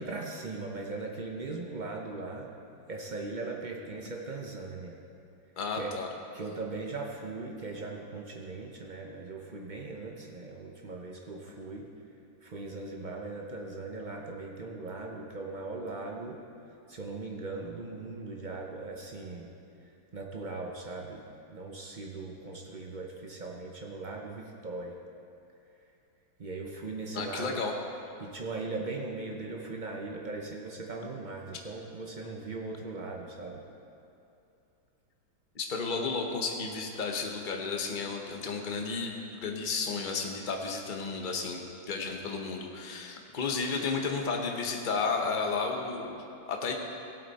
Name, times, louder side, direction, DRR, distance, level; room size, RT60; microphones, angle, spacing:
voice 1, 0.0-2.5 2.9-5.0 5.7-5.9 6.3-11.9 12.4-16.4 16.9-19.5 20.1-21.2 21.5-25.0 26.4-27.6 27.9-33.6, right 3 dB, 80° right, 0 dB, 0.4 m, -39 dB
voice 2, 5.6-6.1 27.1-27.7 35.5-39.1 39.4-41.6 41.9-46.7, left 4 dB, 35° left, 1 dB, 0.8 m, -32 dB
16.0 x 8.4 x 4.2 m, 2.7 s
omnidirectional pair, 2.1 m